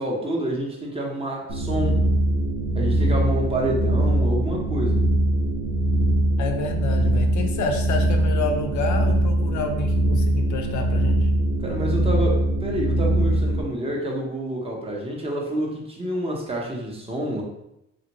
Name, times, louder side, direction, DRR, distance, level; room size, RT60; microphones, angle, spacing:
voice 1, 0.0-2.0 2.7-5.0 11.6-17.4, right 1 dB, 20° right, -2 dB, 0.9 m, -28 dB
sound 1, 1.5-13.6, right 1 dB, 75° right, 0.7 m, -22 dB
voice 2, 6.4-11.3, left 4 dB, 70° left, 4 dB, 0.6 m, -29 dB
3.4 x 2.4 x 2.9 m, 0.85 s
cardioid pair, 90°, 30 cm